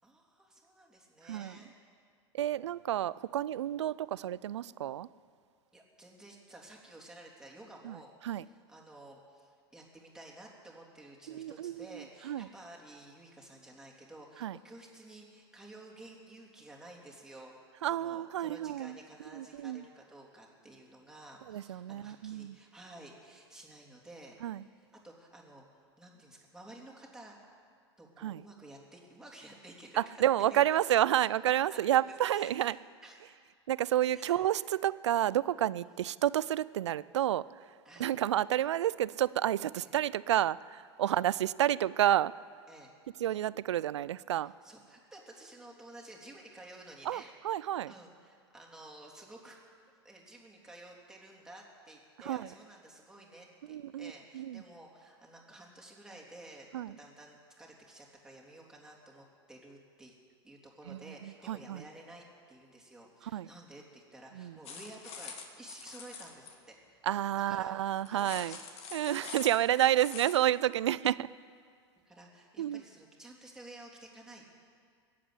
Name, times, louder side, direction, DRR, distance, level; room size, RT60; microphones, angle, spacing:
voice 1, 0.0-1.7 5.7-17.5 17.8-25.6 26.0-27.4 28.0-30.0 30.5-31.0 31.7-33.2 34.1-34.4 35.8-36.0 37.8-38.1 39.8-39.9 41.0-41.2 42.7-42.9 44.4-49.6 50.0-60.1 60.4-67.0 67.5-68.7 72.0-74.6, right 1 dB, 5° right, -3 dB, 3.3 m, -52 dB
voice 2, 2.3-5.1 7.8-8.0 8.2-8.4 11.3-12.5 14.4-14.6 17.8-19.0 19.3-19.8 21.5-22.6 24.4-24.6 28.2-28.4 30.0-32.8 33.7-37.4 38.0-42.3 43.2-44.5 47.1-47.9 52.3-52.5 53.7-54.6 56.7-56.9 60.9-61.0 61.5-61.8 63.3-63.5 64.4-64.5 67.1-68.5 68.9-71.3 72.6-72.8, right 12 dB, 80° right, 20 dB, 0.4 m, -30 dB
sound 1, 64.6-66.5 68.1-70.4, left 6 dB, 45° left, 2.0 m, -45 dB
20.5 x 8.6 x 8.2 m, 2.1 s
hypercardioid pair, 90°, 15 cm